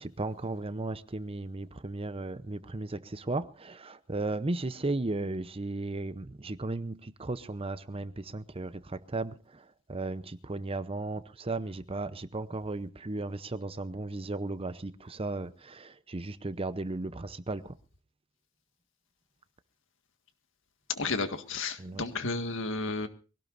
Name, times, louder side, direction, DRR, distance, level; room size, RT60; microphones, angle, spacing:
voice 1, 0.0-17.8 21.8-22.0, right 2 dB, 25° right, 0.7 m, -35 dB
voice 2, 20.9-23.1, left 3 dB, 65° left, 1.8 m, -32 dB
23.5 x 17.5 x 2.6 m
head